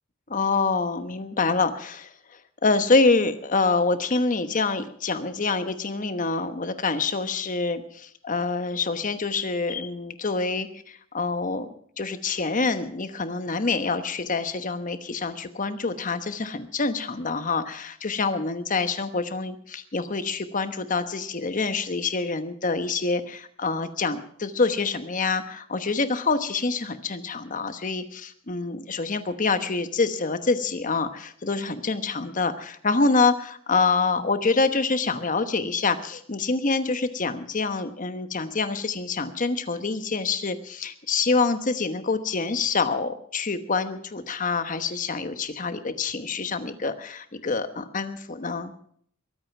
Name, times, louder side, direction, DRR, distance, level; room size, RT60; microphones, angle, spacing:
voice 1, 0.3-11.7 12.0-48.7, left 4 dB, 40° left, 10 dB, 1.1 m, -26 dB
22.5 x 8.8 x 5.9 m, 0.62 s
head